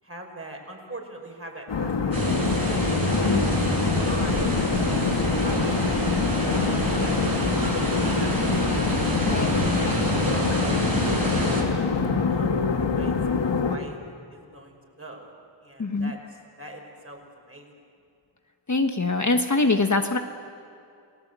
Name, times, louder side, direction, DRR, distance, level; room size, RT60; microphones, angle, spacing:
voice 1, 0.0-2.7 3.1-3.4 3.7-4.6 5.2-8.5 9.0-11.9 12.3-12.5 12.8-14.0 14.3-15.3 15.6-17.8, right 1 dB, 30° right, 2 dB, 5.6 m, -42 dB
sound 1, 1.7-13.8, left 5 dB, 65° left, 1.7 m, -25 dB
sound 2, 2.1-11.6, right 2 dB, 50° right, 6.6 m, -27 dB
voice 2, 3.1-3.5 9.2-9.5 9.8-10.1 15.8-16.1 18.7-20.2, left 3 dB, 35° left, 5 dB, 1.4 m, -24 dB
29.5 x 18.5 x 8.3 m, 2.5 s
wide cardioid pair, 70°, 47 cm